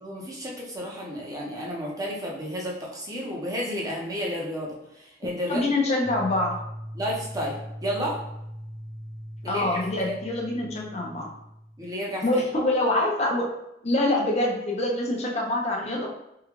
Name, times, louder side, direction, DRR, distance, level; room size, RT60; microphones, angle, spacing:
voice 1, 0.0-5.7 6.9-8.2 9.4-10.1 11.8-12.2, equal, 20° right, -3 dB, 0.8 m, -32 dB
voice 2, 5.5-6.5 9.4-11.3 12.2-13.5 13.8-16.1, left 1 dB, 35° left, -1 dB, 0.6 m, -25 dB
sound 1, 6.0-11.9, equal, 55° left, 1.2 m, -40 dB
3.7 x 2.3 x 3.0 m, 0.82 s
head